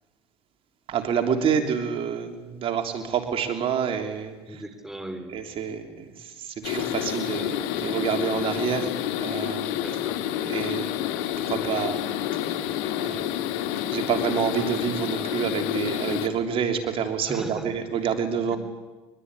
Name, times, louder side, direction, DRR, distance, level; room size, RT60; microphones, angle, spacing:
voice 1, 0.9-4.6 5.3-9.7 10.4-10.8 11.4-12.0 12.3-12.5 13.0-13.5 13.9-18.6, right 7 dB, 50° right, 5 dB, 3.3 m, -28 dB
voice 2, 4.5-5.3 9.8-10.2 17.3-17.7, right 1 dB, 5° right, 8 dB, 3.4 m, -37 dB
sound 1, 6.6-16.3, left 11 dB, 80° left, 2.0 m, -29 dB
23.0 x 23.0 x 9.8 m, 1.2 s
supercardioid pair, 100°, 12 cm